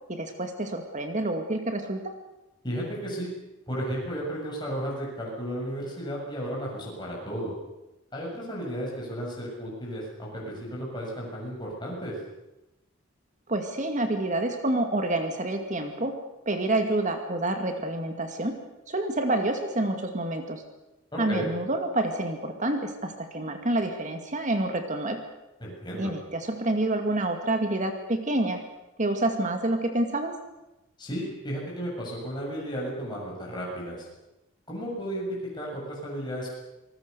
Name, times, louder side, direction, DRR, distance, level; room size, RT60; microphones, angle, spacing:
voice 1, 0.1-2.1 13.5-16.2 16.5-18.6 18.9-20.6 21.2-25.2 25.9-28.6 29.0-30.3, right 2 dB, 40° right, 5 dB, 2.2 m, -28 dB
voice 2, 2.6-3.3 3.7-7.5 8.1-12.1 21.1-21.5 25.6-26.1 31.0-34.1 34.7-35.2 35.5-36.5, equal, 20° left, -4 dB, 7.4 m, -34 dB
27.0 x 19.5 x 6.9 m, 0.96 s
head